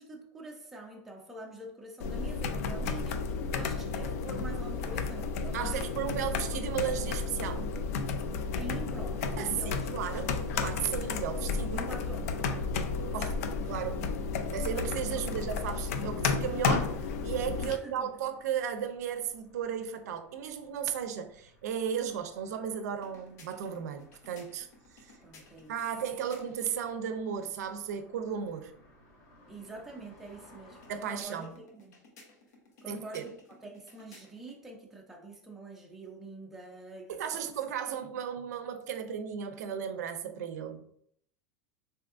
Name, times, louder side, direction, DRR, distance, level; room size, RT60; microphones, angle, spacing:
voice 1, 0.0-6.3 8.6-9.9 10.3-10.4 11.7-12.8 15.2-15.4 17.6-18.1 25.2-25.7 29.5-32.0 32.8-33.3 33.6-37.4, right 2 dB, 5° right, 0.4 m, -46 dB
sound 1, 2.0-17.8, left 4 dB, 65° left, 0.3 m, -32 dB
voice 2, 5.5-7.7 9.4-11.9 13.1-14.0 14.5-24.7 24.9-25.1 25.7-28.7 30.9-31.5 32.9-33.2 37.1-40.8, right 8 dB, 85° right, 0.4 m, -35 dB
sound 2, 11.4-31.2, right 2 dB, 50° left, 1.1 m, -56 dB
sound 3, 22.9-26.8 30.7-34.6, left 3 dB, 85° left, 0.9 m, -57 dB
3.4 x 2.7 x 2.4 m
supercardioid pair, 160°, 9 cm